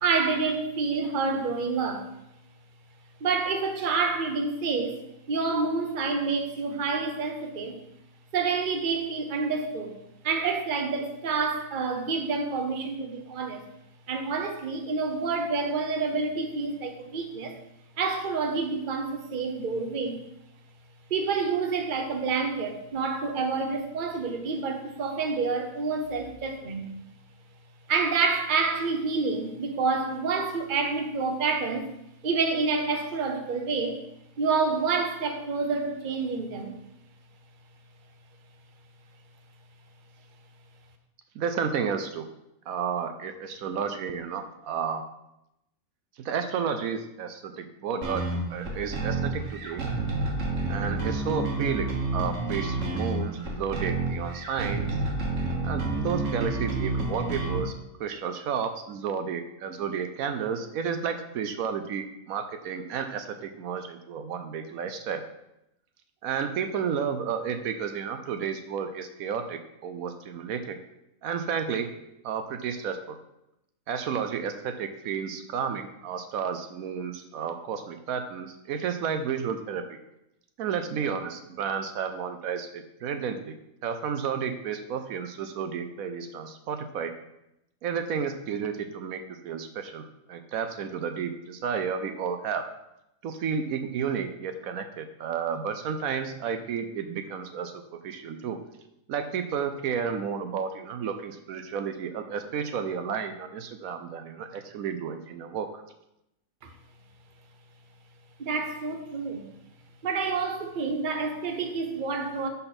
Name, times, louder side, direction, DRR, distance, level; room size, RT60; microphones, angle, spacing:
voice 1, 0.0-2.1 3.2-5.0 5.3-7.8 8.3-9.9 10.2-13.7 14.1-17.6 18.0-20.2 21.1-26.9 27.9-31.9 32.2-34.0 34.4-36.8 106.6-106.7 108.4-109.5 110.0-112.5, right 4 dB, 40° right, 0.9 m, -28 dB
voice 2, 41.3-42.3 42.7-45.0 46.2-48.2 48.5-49.8 50.7-55.0 55.6-57.7 58.0-65.2 66.2-70.8 71.2-71.9 72.2-73.2 73.9-79.8 80.6-83.5 83.8-87.1 87.8-92.6 93.2-97.7 98.0-98.6 99.1-105.8, right 7 dB, 80° right, 1.1 m, -32 dB
sound 1, 48.0-57.6, right 2 dB, 60° right, 1.6 m, -30 dB
10.5 x 4.2 x 4.2 m
omnidirectional pair, 1.5 m